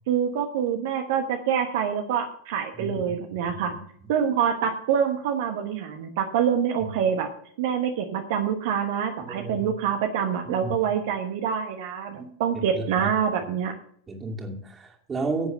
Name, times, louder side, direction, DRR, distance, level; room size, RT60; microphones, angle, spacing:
voice 1, 0.1-3.7 4.1-7.3 7.6-13.7, right 8 dB, 50° right, 4 dB, 1.2 m, -26 dB
voice 2, 9.2-9.7 10.5-10.7 12.2-12.3 12.7-13.1 14.1-15.5, right 3 dB, 20° right, 1 dB, 2.5 m, -32 dB
11.0 x 8.2 x 5.8 m, 0.62 s
figure-of-eight pair, 90°, 0 cm